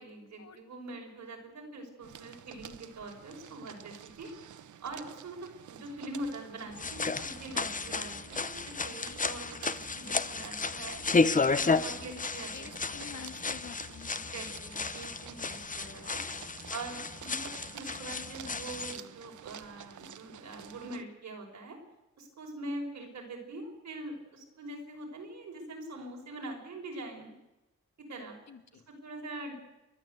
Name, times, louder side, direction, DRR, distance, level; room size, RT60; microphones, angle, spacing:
voice 1, 0.0-4.3 4.8-11.0 11.5-12.9 14.1-16.2 16.7-21.8 22.2-27.3 28.1-28.4 28.9-29.5, right 2 dB, 65° right, 1 dB, 5.7 m, -43 dB
sound 1, 2.0-21.0, right 9 dB, 90° right, 1.0 m, -50 dB
sound 2, 6.7-19.0, left 4 dB, 25° left, 0.8 m, -32 dB
voice 2, 12.5-14.3 28.5-28.8, left 6 dB, 65° left, 9 dB, 1.9 m, -48 dB
29.5 x 12.5 x 8.2 m, 0.99 s
wide cardioid pair, 150°, 29 cm